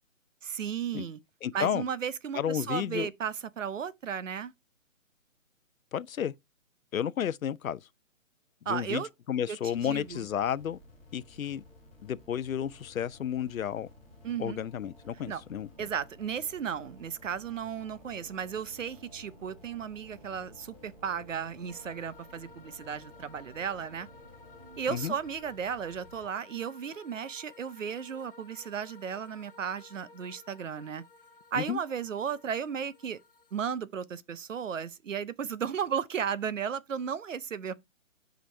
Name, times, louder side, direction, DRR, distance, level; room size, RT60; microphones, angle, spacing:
voice 1, 0.4-1.2 1.5-4.5 8.7-9.1 9.5-10.3 14.2-14.6 15.3-15.4 15.8-24.1 24.8-31.0 31.5-33.2 33.5-37.7, right 7 dB, 65° right, 0.8 m, -35 dB
voice 2, 1.4-1.8 2.3-3.1 5.9-6.3 6.9-7.8 8.7-10.8 11.1-11.6 12.0-13.9 14.4-15.7 24.9-25.1 31.6-31.8, left 9 dB, 80° left, 0.7 m, -32 dB
sound 1, 9.2-24.8, right 1 dB, 30° right, 1.8 m, -59 dB
sound 2, 9.7-26.3, left 2 dB, 5° left, 1.4 m, -56 dB
sound 3, 21.7-33.7, left 3 dB, 40° left, 0.7 m, -55 dB
7.7 x 5.2 x 4.4 m
hypercardioid pair, 175°, 41 cm